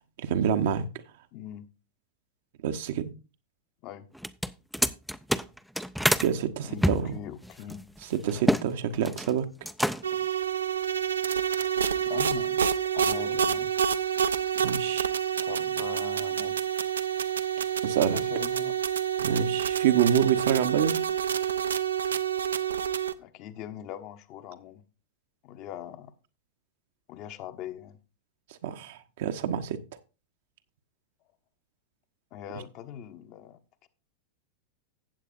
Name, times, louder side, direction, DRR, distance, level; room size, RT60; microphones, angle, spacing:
voice 1, 0.2-0.8 2.6-3.1 6.2-7.1 8.1-9.4 14.6-15.1 17.8-18.2 19.2-21.0 28.6-29.8, right 9 dB, 55° right, 0.9 m, -27 dB
voice 2, 1.3-1.7 3.8-4.1 6.6-7.8 12.0-13.7 15.4-16.6 18.1-18.8 23.2-24.8 25.4-26.1 27.1-28.0 32.3-33.9, left 10 dB, 40° left, 1.0 m, -41 dB
sound 1, 4.2-6.3 6.8-8.7 8.9-9.3 9.6-10.2, equal, ahead, 0.4 m, -27 dB
sound 2, 10.0-23.1, right 8 dB, 70° right, 0.6 m, -28 dB
15.0 x 8.4 x 2.5 m
figure-of-eight pair, 90°, 0 cm